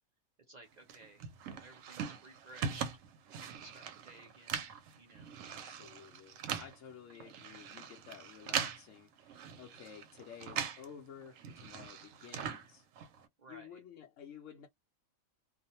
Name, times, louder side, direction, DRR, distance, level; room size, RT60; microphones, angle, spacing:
voice 1, 0.5-2.9 3.4-4.7 5.0-5.4 13.4-13.8, right 2 dB, 50° right, 0.5 m, -56 dB
sound 1, 0.9-10.9 11.2-13.3, right 7 dB, 75° right, 0.9 m, -41 dB
voice 2, 5.4-12.9 13.5-14.7, left 8 dB, 70° left, 0.9 m, -53 dB
2.4 x 2.1 x 2.7 m
omnidirectional pair, 1.4 m